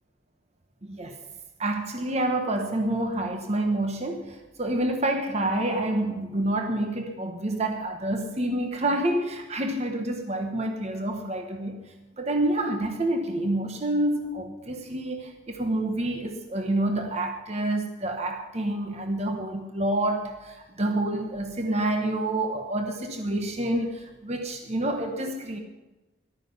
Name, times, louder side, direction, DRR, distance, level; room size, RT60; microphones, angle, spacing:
voice 1, 0.8-1.2 1.6-11.8 12.2-25.6, right 1 dB, 35° right, 4 dB, 1.1 m, -28 dB
14.0 x 12.0 x 5.5 m, 1.1 s
head